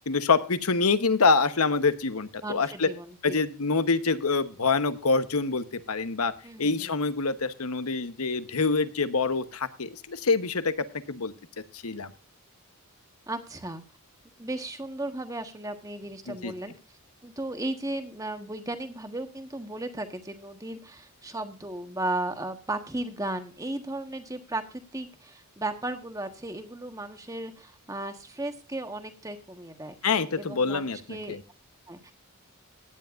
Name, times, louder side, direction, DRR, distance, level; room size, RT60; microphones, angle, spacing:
voice 1, 0.1-2.9 3.2-6.3 6.6-10.7 11.1-11.3 11.7-12.1 16.3-16.5 30.0-31.4, left 4 dB, 80° left, 12 dB, 1.0 m, -26 dB
voice 2, 2.4-3.4 6.4-6.9 13.3-13.8 14.4-16.7 17.2-31.4 31.9-32.0, right 2 dB, 15° right, 7 dB, 1.4 m, -35 dB
17.0 x 10.5 x 2.5 m, 0.34 s
head